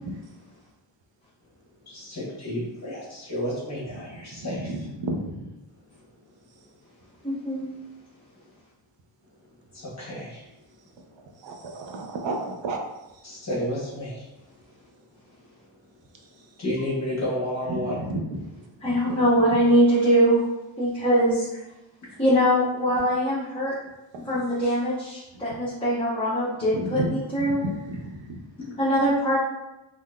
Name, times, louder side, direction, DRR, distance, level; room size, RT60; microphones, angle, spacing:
voice 1, 1.8-4.7 9.7-10.5 13.2-14.3 16.6-18.0 22.0-22.2 24.6-24.7 28.6-28.8, left 1 dB, 40° left, -7 dB, 0.9 m, -31 dB
voice 2, 5.0-5.4 11.4-12.8 17.7-18.6 19.1-19.2 19.5-19.6 25.3-25.6 26.7-27.1 27.4-28.4, right 2 dB, 90° right, 3 dB, 0.6 m, -32 dB
voice 3, 7.2-7.7 18.8-20.4 20.8-21.4 22.2-23.7 24.2-27.6 28.8-29.4, equal, 10° left, -11 dB, 0.7 m, -22 dB
3.6 x 2.5 x 2.2 m, 0.98 s
wide cardioid pair, 170°, 43 cm